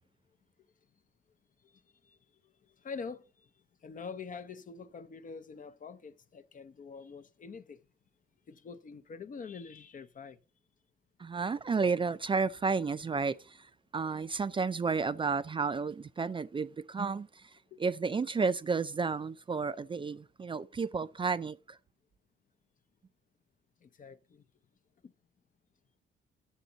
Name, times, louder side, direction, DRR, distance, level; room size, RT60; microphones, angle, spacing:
voice 1, 2.8-3.5 3.8-7.8 8.5-10.4 17.7-17.8 23.8-24.4 25.0-25.1, left 5 dB, 40° left, 0.7 m, -45 dB
voice 2, 11.2-21.8, right 4 dB, 25° right, 0.4 m, -32 dB
10.0 x 7.1 x 3.9 m
cardioid pair, 90°, 20 cm